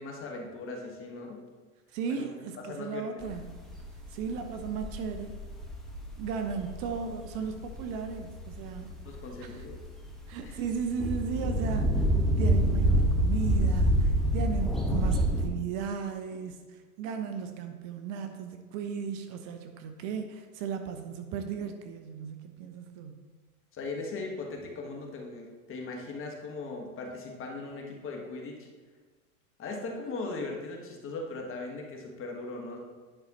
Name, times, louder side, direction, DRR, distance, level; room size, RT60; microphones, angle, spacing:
voice 1, 0.0-1.4 2.1-2.3 2.6-3.1 9.0-9.8 10.4-10.6 23.7-28.7 29.6-32.8, left 3 dB, 30° left, 1 dB, 1.4 m, -39 dB
voice 2, 1.9-3.7 4.1-5.4 6.2-8.9 9.4-9.6 10.3-12.1 12.4-23.1, right 6 dB, 45° right, 6 dB, 0.7 m, -36 dB
sound 1, 3.2-15.5, right 1 dB, ahead, 1.3 m, -28 dB
9.9 x 5.5 x 3.0 m, 1.4 s
hypercardioid pair, 105°, 44 cm